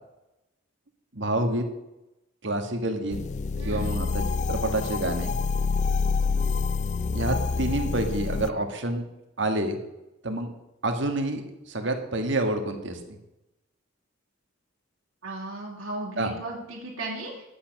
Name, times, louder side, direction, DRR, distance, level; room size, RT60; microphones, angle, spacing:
voice 1, 1.1-1.7 2.4-3.2 3.6-5.3 7.1-9.0 9.4-9.8 10.2-10.5 10.8-13.2 16.2-16.3, right 1 dB, 55° right, 5 dB, 1.7 m, -28 dB
sound 1, 3.1-8.5, left 4 dB, 35° left, 0.3 m, -27 dB
voice 2, 3.6-4.0 15.2-17.4, right 2 dB, 75° right, -5 dB, 2.3 m, -36 dB
11.5 x 8.6 x 6.0 m, 0.92 s
head